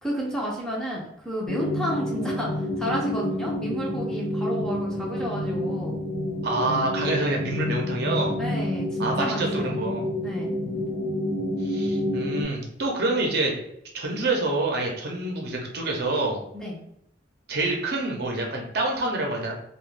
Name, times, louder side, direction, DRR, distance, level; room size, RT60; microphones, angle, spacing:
voice 1, 0.0-6.0 8.4-9.8 10.2-10.5 16.5-16.8, equal, 5° left, -4 dB, 0.5 m, -31 dB
sound 1, 1.5-12.4, left 1 dB, 65° left, 1.2 m, -29 dB
voice 2, 6.4-8.3 9.0-10.1 11.6-13.5 13.9-16.4 17.5-19.5, right 2 dB, 55° right, 0 dB, 0.6 m, -27 dB
2.4 x 2.2 x 3.2 m, 0.75 s
head